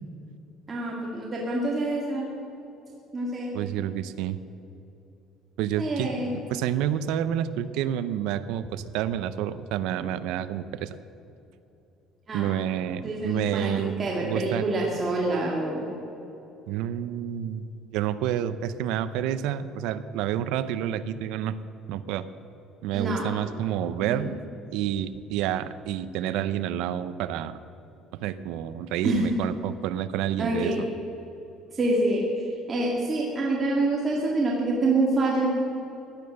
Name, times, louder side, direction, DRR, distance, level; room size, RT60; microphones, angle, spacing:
voice 1, 0.7-2.3 3.1-3.5 5.8-6.4 12.3-12.5 13.0-13.7 14.0-15.9 22.9-23.2 24.0-24.3 29.0-29.4 30.4-30.8 31.7-32.2 32.7-35.5, right 2 dB, 25° right, -3 dB, 2.1 m, -26 dB
voice 2, 3.5-4.4 5.6-10.9 12.3-14.6 16.7-17.6 17.9-21.6 21.9-22.3 22.8-24.4 24.7-27.6 28.2-30.9, right 10 dB, 85° right, 13 dB, 0.6 m, -29 dB
16.5 x 10.5 x 6.5 m, 2.9 s
cardioid pair, 145°, 0 cm